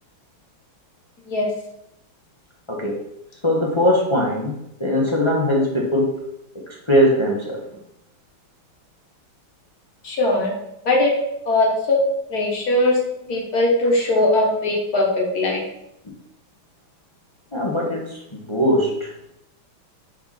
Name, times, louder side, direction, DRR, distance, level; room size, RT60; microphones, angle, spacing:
voice 1, 3.4-6.3 6.7-7.6 17.5-19.1, equal, 20° left, -3 dB, 0.7 m, -21 dB
voice 2, 10.0-10.5 10.9-11.1 11.5-12.0 12.3-13.0 13.3-15.6, left 2 dB, 50° left, 0 dB, 1.8 m, -20 dB
5.6 x 4.2 x 5.6 m, 0.81 s
omnidirectional pair, 2.3 m